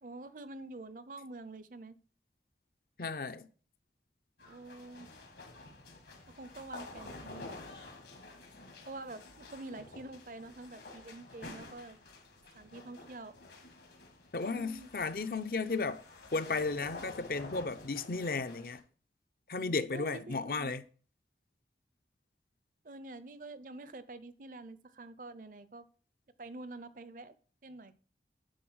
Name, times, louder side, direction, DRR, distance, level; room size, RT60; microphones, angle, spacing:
voice 1, 0.0-2.0 4.4-5.1 6.3-7.6 8.9-12.0 12.5-13.4 14.4-14.9 19.9-20.7 22.8-25.9 26.4-27.3 27.6-27.9, right 2 dB, 50° right, 0.6 m, -47 dB
voice 2, 3.0-3.5 14.3-16.0 16.3-18.8 19.5-20.8, left 3 dB, 55° left, 0.6 m, -34 dB
sound 1, 4.4-18.8, left 2 dB, 75° left, 2.0 m, -50 dB
9.4 x 3.8 x 6.3 m
head